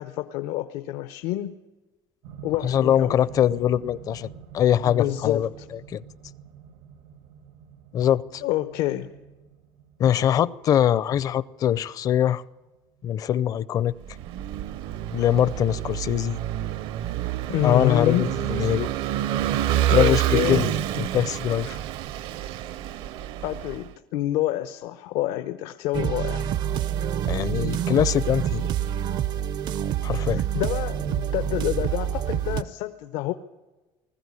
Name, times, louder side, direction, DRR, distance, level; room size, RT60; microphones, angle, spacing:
voice 1, 0.0-1.5 2.4-3.2 4.8-5.7 8.4-9.1 17.5-18.3 19.9-20.7 23.4-26.5 30.1-33.3, left 15 dB, 80° left, 0.9 m, -28 dB
sound 1, 2.2-14.4 15.3-15.4, right 8 dB, 90° right, 2.2 m, -47 dB
voice 2, 2.6-5.5 5.9-6.0 7.9-8.4 10.0-12.4 13.0-13.9 15.1-16.4 17.6-18.9 19.9-20.7 21.0-21.8 27.3-28.7 30.0-30.4, left 10 dB, 35° left, 0.6 m, -22 dB
Vehicle / Engine, 14.1-23.9, right 12 dB, 60° right, 0.9 m, -28 dB
sound 2, 25.9-32.6, right 10 dB, 45° right, 0.6 m, -27 dB
20.5 x 15.0 x 9.8 m
cardioid pair, 160°, 10 cm